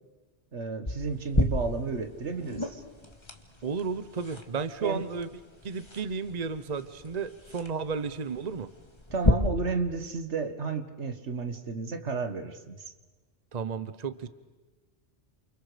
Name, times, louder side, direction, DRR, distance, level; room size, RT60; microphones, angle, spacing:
voice 1, 0.5-2.8 4.8-5.0 9.1-12.8, right 4 dB, 85° right, 8 dB, 1.9 m, -32 dB
sound 1, 0.9-9.3, left 2 dB, 25° left, 1.7 m, -33 dB
voice 2, 3.6-5.3 5.6-8.7 13.5-14.3, right 5 dB, 40° right, 13 dB, 1.0 m, -33 dB
29.0 x 28.5 x 5.1 m, 1.3 s
omnidirectional pair, 1.1 m